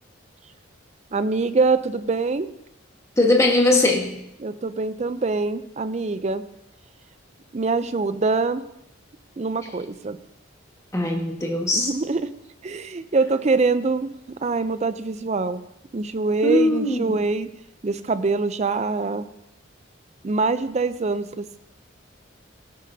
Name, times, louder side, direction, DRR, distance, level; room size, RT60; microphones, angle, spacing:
voice 1, 1.1-2.5 4.4-6.4 7.5-8.6 9.4-10.2 11.7-12.3 12.6-14.1 14.4-15.6 15.9-17.5 17.8-19.2 20.2-21.7, right 3 dB, 35° right, 12 dB, 0.4 m, -24 dB
voice 2, 3.2-4.1 10.9-11.9 16.4-17.2, left 2 dB, 15° left, 0 dB, 1.4 m, -20 dB
16.5 x 9.4 x 2.7 m, 0.82 s
head